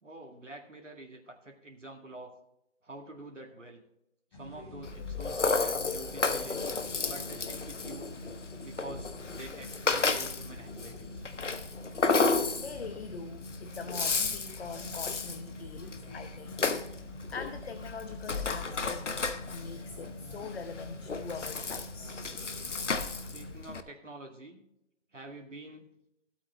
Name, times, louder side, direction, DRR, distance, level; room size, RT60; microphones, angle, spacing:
voice 1, 0.0-2.3 2.8-3.8 4.3-6.7 7.0-8.2 8.6-11.3 23.3-24.6 25.1-25.9, right 2 dB, 85° right, 2 dB, 2.1 m, -47 dB
sound 1, 4.3-23.5, left 1 dB, 20° left, 1.7 m, -47 dB
Rattle (instrument), 4.8-23.8, left 4 dB, 75° left, 1.1 m, -33 dB
voice 2, 12.6-16.6 16.9-19.1 19.5-22.2, left 4 dB, 55° left, 9 dB, 0.9 m, -43 dB
15.0 x 8.4 x 3.1 m, 0.82 s
figure-of-eight pair, 145°, 36 cm